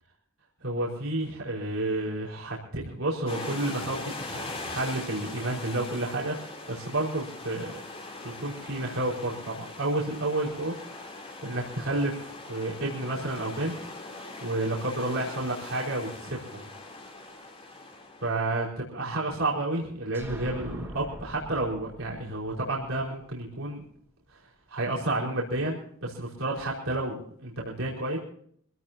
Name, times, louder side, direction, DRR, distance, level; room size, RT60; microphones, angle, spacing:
voice 1, 0.6-7.8 8.2-13.8 14.1-16.7 18.2-23.8 24.7-28.2, right 2 dB, 70° right, -4 dB, 4.9 m, -31 dB
sound 1, 3.3-18.7, left 2 dB, 30° left, 3.4 m, -41 dB
sound 2, 20.1-23.8, equal, 10° right, 4.0 m, -43 dB
26.0 x 17.0 x 2.8 m, 0.62 s
head